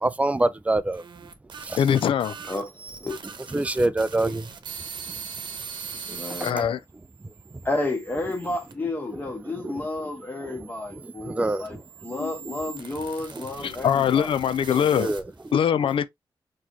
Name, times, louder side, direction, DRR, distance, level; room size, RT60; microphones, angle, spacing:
voice 1, 0.0-1.0 1.6-1.8 3.5-4.4 9.6-9.7 10.4-10.6 11.0-11.6 13.3-13.4 15.0-15.2, right 2 dB, 15° right, 0.3 m, -25 dB
sound 1, 0.8-6.5 7.2-8.7 9.5-15.5, right 6 dB, 60° right, 0.9 m, -41 dB
voice 2, 1.8-2.3 6.4-6.8 12.2-12.6 13.6-15.1 15.5-16.1, left 8 dB, 80° left, 0.4 m, -22 dB
voice 3, 2.5-3.2 6.1-6.7 7.6-11.8 12.0-14.3 14.7-14.9, left 2 dB, 20° left, 1.6 m, -31 dB
6.0 x 3.1 x 2.7 m
wide cardioid pair, 135°, 9 cm